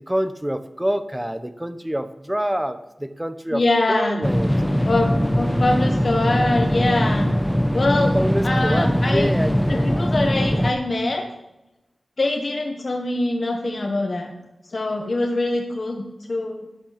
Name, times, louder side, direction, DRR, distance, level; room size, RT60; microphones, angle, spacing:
voice 1, 0.0-3.6 3.9-4.5 7.9-10.0, equal, 10° right, 11 dB, 1.0 m, -26 dB
voice 2, 3.5-4.2 4.9-7.3 7.7-8.2 8.4-9.3 9.7-11.2 12.2-14.3 14.7-16.7, left 2 dB, 60° left, 2 dB, 1.3 m, -23 dB
sound 1, 4.2-10.7, equal, 5° left, 0.8 m, -21 dB
11.5 x 9.2 x 5.1 m, 0.95 s
cardioid pair, 50°, 0 cm